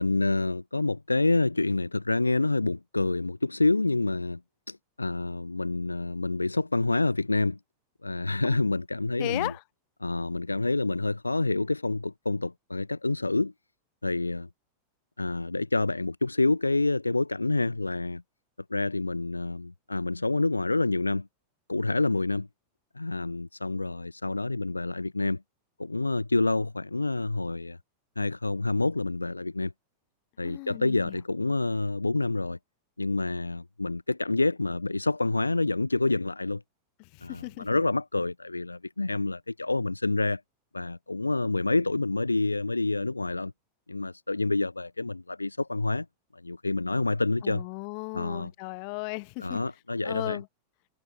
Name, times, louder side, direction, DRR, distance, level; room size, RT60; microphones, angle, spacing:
voice 1, 0.0-4.4 4.7-7.6 8.0-9.5 10.0-13.5 14.0-14.5 15.2-18.2 18.7-21.3 21.7-22.5 23.0-25.4 25.8-27.8 28.2-29.7 30.4-32.6 33.0-36.6 37.2-40.4 40.7-43.5 43.9-46.1 46.4-47.6 48.1-48.5 49.4-50.4, left 2 dB, 80° left, 0.3 m, -27 dB
voice 2, 9.2-9.6 30.4-31.2 37.0-37.8 47.4-49.6 50.0-50.5, left 40 dB or more, 45° left, 0.9 m, -36 dB
figure-of-eight pair, 90°, 0 cm